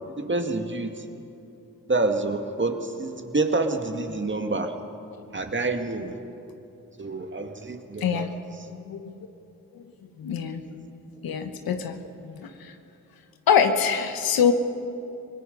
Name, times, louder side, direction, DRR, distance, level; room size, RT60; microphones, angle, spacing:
voice 1, 0.1-1.1 1.9-4.7 5.3-6.2 7.0-8.3, right 3 dB, 35° right, 5 dB, 2.0 m, -27 dB
voice 2, 8.0-8.3 8.8-9.1 9.7-9.8 10.2-10.6 11.2-12.0 12.2-12.7 13.5-14.5, left 7 dB, 85° left, 8 dB, 1.2 m, -24 dB
24.5 x 20.0 x 5.4 m, 2.8 s
supercardioid pair, 45°, 35 cm